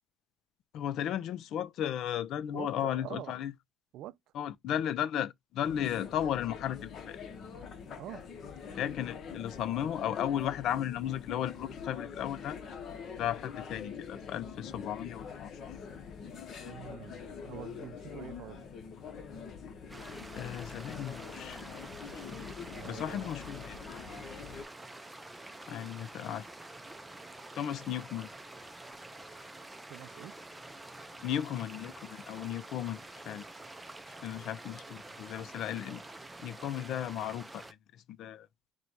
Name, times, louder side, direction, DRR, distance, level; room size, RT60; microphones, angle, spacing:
voice 1, 0.7-3.5 4.3-7.2 8.8-12.6 13.2-15.8 20.4-21.6 22.1-23.8 25.7-26.5 27.5-28.3 31.2-33.0 33.2-33.4 34.1-36.0 36.4-37.6 37.9-38.5, left 10 dB, 65° left, 0.4 m, -35 dB
voice 2, 2.5-3.4 3.9-4.2 8.0-8.2 16.7-18.7 22.6-23.3 29.9-30.4 35.9-36.0, right 14 dB, 70° right, 0.3 m, -46 dB
sound 1, 5.6-24.6, left 6 dB, 50° left, 0.9 m, -44 dB
sound 2, 19.9-37.7, right 2 dB, 10° right, 0.5 m, -48 dB
4.5 x 2.2 x 4.0 m
cardioid pair, 135°, 0 cm